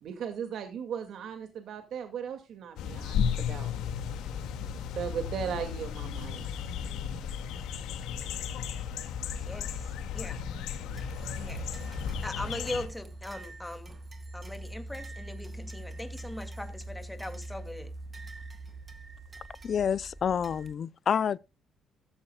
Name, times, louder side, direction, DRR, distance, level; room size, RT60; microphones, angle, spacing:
voice 1, 0.0-3.7 4.8-6.5, right 7 dB, 65° right, 2.3 m, -37 dB
sound 1, 2.8-12.9, left 7 dB, 90° left, 2.2 m, -34 dB
voice 2, 9.3-9.7 10.1-10.4 11.4-11.7 12.2-14.0 14.3-17.9, left 1 dB, 5° left, 2.5 m, -40 dB
sound 2, 10.9-20.7, right 1 dB, 20° right, 2.1 m, -43 dB
voice 3, 19.6-21.4, left 7 dB, 45° left, 0.5 m, -28 dB
14.5 x 13.0 x 2.4 m
cardioid pair, 125°, 0 cm